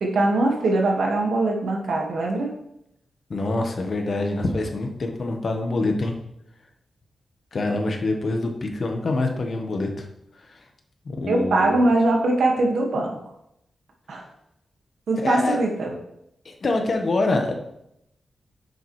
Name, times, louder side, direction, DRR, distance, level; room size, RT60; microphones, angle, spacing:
voice 1, 0.0-2.5 11.3-13.1 14.1-14.2 15.1-16.0, right 2 dB, 75° right, 0 dB, 1.8 m, -22 dB
voice 2, 3.3-6.1 7.5-10.1 11.0-11.8 15.2-15.6 16.4-17.5, left 2 dB, 45° left, 4 dB, 1.3 m, -25 dB
10.0 x 6.9 x 3.3 m, 0.79 s
wide cardioid pair, 145°, 0 cm